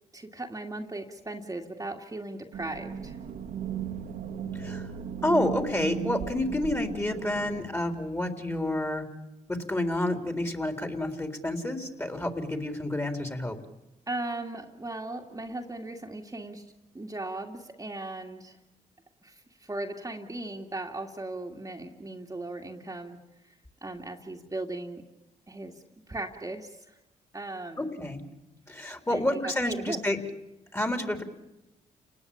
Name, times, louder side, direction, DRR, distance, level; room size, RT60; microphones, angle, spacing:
voice 1, 0.1-3.2 14.1-16.6 16.9-18.6 19.2-23.2 23.8-25.1 25.5-27.0 27.3-27.9 29.1-30.0 30.9-31.0, right 2 dB, 20° right, 1 dB, 2.4 m, -37 dB
sound 1, 2.5-7.6, right 8 dB, 70° right, 2.2 m, -36 dB
voice 2, 4.5-4.9 5.2-9.1 9.5-13.6 27.8-28.2 28.7-30.2 30.7-31.2, left 1 dB, 15° left, 6 dB, 3.8 m, -29 dB
29.5 x 19.5 x 8.7 m, 0.96 s
supercardioid pair, 60°, 15 cm